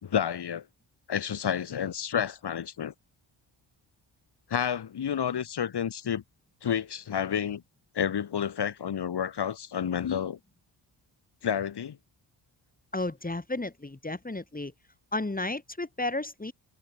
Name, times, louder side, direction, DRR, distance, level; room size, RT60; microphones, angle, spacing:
voice 1, 0.0-0.6 1.1-2.9 4.5-6.2 6.6-7.6 7.9-10.4 11.4-12.0, left 8 dB, 50° left, 3.0 m, -30 dB
voice 2, 12.9-14.7 15.1-16.5, left 2 dB, 15° left, 5.3 m, -33 dB
supercardioid pair, 60°, 50 cm